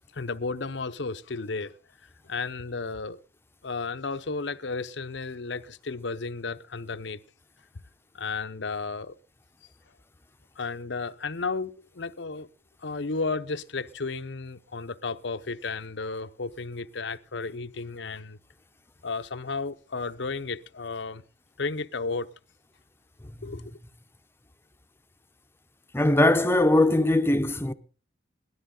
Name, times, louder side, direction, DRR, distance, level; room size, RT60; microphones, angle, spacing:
voice 1, 0.1-1.7 2.3-3.2 3.6-7.2 8.1-9.1 10.6-12.5 12.8-18.4 19.0-21.2 21.6-22.3 23.4-23.6, left 4 dB, 75° left, 0.8 m, -33 dB
voice 2, 25.9-27.7, left 1 dB, 15° left, 0.7 m, -21 dB
17.5 x 12.5 x 3.9 m
head